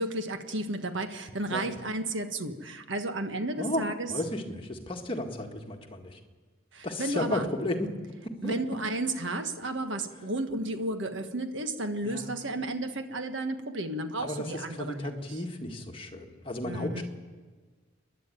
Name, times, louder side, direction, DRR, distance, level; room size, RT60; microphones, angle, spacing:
voice 1, 0.0-4.1 6.7-7.4 8.4-15.2 16.6-17.0, right 2 dB, 65° right, 7 dB, 1.5 m, -33 dB
voice 2, 3.6-6.2 6.8-7.9 8.2-8.6 12.0-12.4 14.2-17.0, left 1 dB, 25° left, 2 dB, 1.8 m, -34 dB
29.5 x 11.0 x 9.2 m, 1.4 s
head